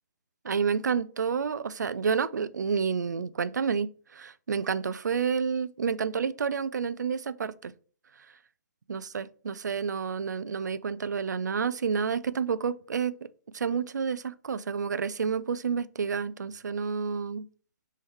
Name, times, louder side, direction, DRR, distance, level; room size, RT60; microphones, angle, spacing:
voice 1, 0.4-7.7 8.9-13.3 13.5-17.5, right 6 dB, 85° right, 0.4 m, -29 dB
4.5 x 3.5 x 3.1 m
hypercardioid pair, 150°, 9 cm